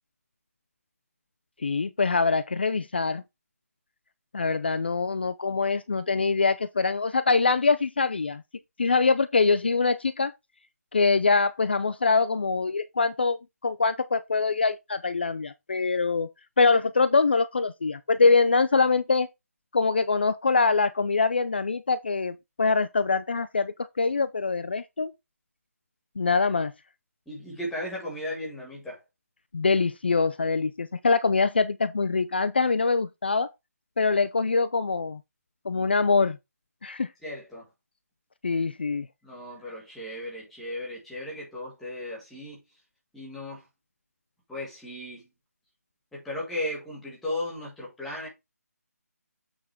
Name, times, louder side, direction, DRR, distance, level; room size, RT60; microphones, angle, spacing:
voice 1, 1.6-3.2 4.3-8.4 8.8-10.3 10.9-16.3 16.6-19.3 19.7-25.1 26.2-26.7 29.5-33.5 34.0-35.2 35.7-36.4 36.8-37.1 38.4-39.1, left 4 dB, 40° left, 0.5 m, -24 dB
voice 2, 27.3-29.0 37.2-37.7 39.2-42.6 43.1-43.6 44.5-45.3 46.1-48.3, left 1 dB, ahead, 1.6 m, -36 dB
8.7 x 3.7 x 4.6 m
hypercardioid pair, 175°, 9 cm